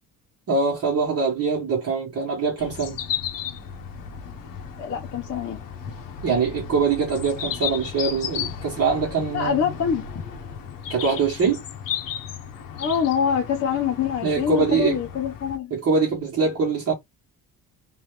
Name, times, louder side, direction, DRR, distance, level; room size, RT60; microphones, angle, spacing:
voice 1, 0.5-3.0 6.2-9.6 10.9-11.6 14.2-15.0 15.7-16.9, right 5 dB, 45° right, 1.7 m, -23 dB
sound 1, 2.6-15.6, left 8 dB, 70° left, 1.1 m, -34 dB
voice 2, 4.8-5.6 9.3-10.2 12.8-15.7, left 7 dB, 40° left, 1.0 m, -25 dB
3.4 x 3.2 x 3.4 m
cardioid pair, 165°, 35 cm